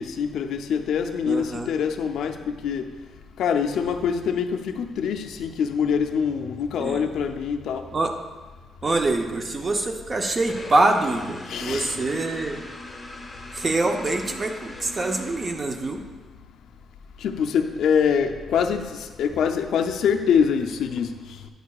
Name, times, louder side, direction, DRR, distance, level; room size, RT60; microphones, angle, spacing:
voice 1, 0.0-2.9 3.4-7.9 11.5-12.0 17.2-21.5, left 7 dB, 75° left, 6 dB, 0.4 m, -24 dB
voice 2, 1.2-1.7 6.8-7.0 7.9-8.1 8.8-12.6 13.5-16.0, right 2 dB, 25° right, 5 dB, 0.5 m, -25 dB
sound 1, 10.5-16.1, left 2 dB, 15° left, 0.8 m, -40 dB
9.1 x 6.4 x 2.3 m, 1.3 s
cardioid pair, 160°, 0 cm